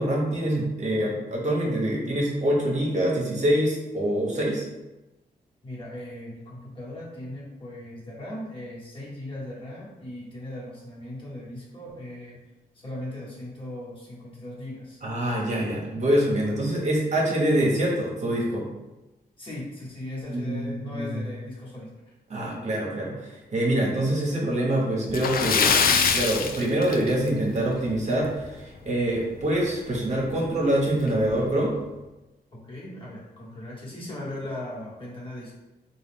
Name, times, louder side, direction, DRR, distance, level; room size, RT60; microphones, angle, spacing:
voice 1, 0.0-4.6 15.0-18.7 20.3-21.2 22.3-25.8 26.1-31.7, right 1 dB, 45° right, -3 dB, 0.9 m, -25 dB
voice 2, 5.6-12.4 12.7-15.0 19.4-22.1 32.5-35.5, left 1 dB, 30° left, -6 dB, 1.3 m, -38 dB
Splash splatter, 25.1-27.5 27.8-28.0 28.4-28.5 29.9-30.0 30.4-30.5 31.1-31.3, left 6 dB, 65° left, 0.4 m, -23 dB
3.8 x 2.4 x 3.5 m, 1.0 s
cardioid pair, 100°, 16 cm